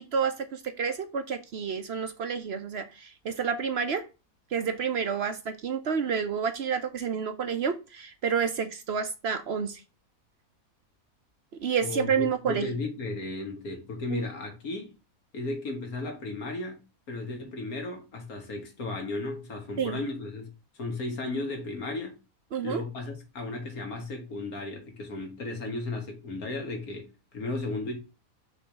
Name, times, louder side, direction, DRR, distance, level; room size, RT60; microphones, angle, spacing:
voice 1, 0.0-4.0 4.5-9.8 11.6-12.7 14.1-14.2 19.8-20.0 22.5-22.8, right 6 dB, 55° right, 0.8 m, -29 dB
voice 2, 11.8-14.9 15.3-16.8 17.1-20.5 20.7-22.2 22.6-28.0, left 2 dB, 85° left, 2.1 m, -35 dB
6.1 x 3.4 x 5.2 m
omnidirectional pair, 1.5 m